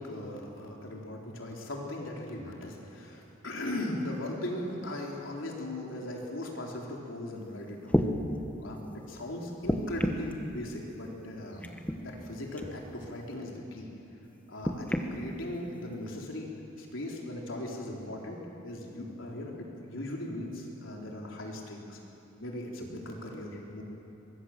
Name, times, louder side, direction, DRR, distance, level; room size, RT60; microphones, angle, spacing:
voice 1, 0.0-8.0 8.6-13.9 14.5-16.5 16.8-18.4 18.6-22.0 22.4-23.8, left 1 dB, 85° left, -1 dB, 3.9 m, -38 dB
sound 1, 7.4-7.5 7.9-8.1 9.6-10.3 11.6-12.0 12.6-12.8 14.6-15.1 16.0-16.1, equal, 10° left, 1.3 m, -29 dB
24.0 x 21.0 x 7.5 m, 3.0 s
head